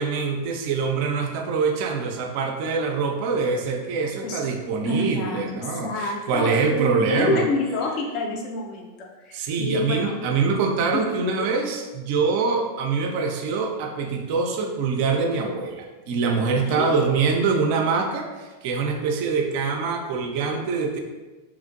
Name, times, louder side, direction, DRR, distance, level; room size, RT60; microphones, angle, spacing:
voice 1, 0.0-7.5 9.3-21.0, right 4 dB, 45° right, 3 dB, 0.4 m, -24 dB
voice 2, 4.8-10.1 10.9-11.1 11.4-11.5 16.6-16.9, left 2 dB, 40° left, 0 dB, 0.5 m, -28 dB
3.0 x 2.4 x 2.5 m, 1.2 s
figure-of-eight pair, 90°, 0 cm